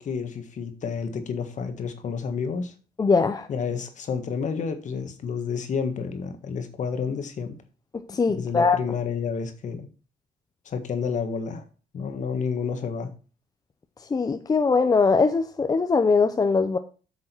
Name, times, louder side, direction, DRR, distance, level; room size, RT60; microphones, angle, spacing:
voice 1, 0.0-2.7 3.5-7.6 8.3-9.9 10.7-11.6 11.9-13.1, left 6 dB, 45° left, 8 dB, 1.6 m, -30 dB
voice 2, 3.0-3.5 7.9-8.8 14.1-16.8, left 4 dB, 20° left, 8 dB, 0.6 m, -21 dB
8.5 x 6.3 x 4.5 m, 0.37 s
cardioid pair, 110°, 17 cm